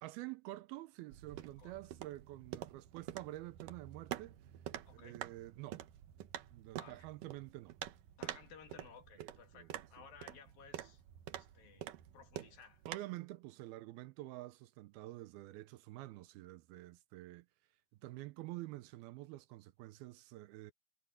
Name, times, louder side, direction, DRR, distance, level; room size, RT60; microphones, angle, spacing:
voice 1, 0.0-4.4 4.9-5.8 6.5-7.8 9.2-9.3 9.5-9.7 12.9-17.5 18.0-20.7, right 17 dB, 85° right, 2.6 m, -48 dB
sound 1, 1.1-13.0, right 12 dB, 70° right, 2.4 m, -48 dB
voice 2, 1.4-1.8 4.9-5.2 6.8-7.1 8.2-11.0 11.3-12.8, left 6 dB, 70° left, 4.0 m, -58 dB
omnidirectional pair, 4.5 m